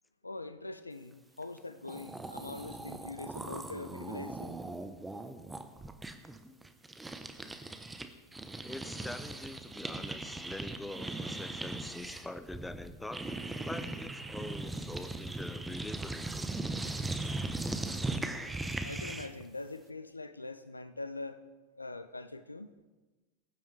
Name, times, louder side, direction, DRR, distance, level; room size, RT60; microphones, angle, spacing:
voice 1, 0.2-4.6 18.8-21.4 21.8-22.7, left 3 dB, 90° left, 12 dB, 0.6 m, -43 dB
sound 1, 1.6-1.7 1.8-8.1 8.3-19.4, right 2 dB, 10° right, 1.0 m, -39 dB
voice 2, 8.6-13.3 13.6-16.5, left 2 dB, 10° left, 11 dB, 0.8 m, -44 dB
20.0 x 9.1 x 3.4 m, 1.2 s
figure-of-eight pair, 85°, 0 cm